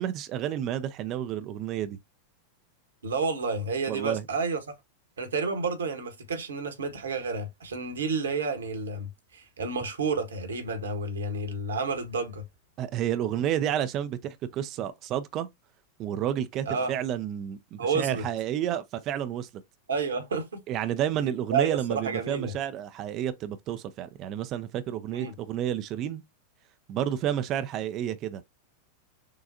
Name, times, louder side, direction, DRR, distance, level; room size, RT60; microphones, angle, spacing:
voice 1, 0.0-2.0 3.9-4.2 12.8-15.5 16.0-19.5 20.7-26.2 26.9-28.4, right 10 dB, 35° right, 0.5 m, -30 dB
voice 2, 3.0-4.7 5.2-12.4 16.7-16.9 17.8-18.2 19.9-20.6 21.5-22.5 25.1-25.3, right 4 dB, 70° right, 1.3 m, -30 dB
6.4 x 2.4 x 2.7 m
figure-of-eight pair, 90°, 0 cm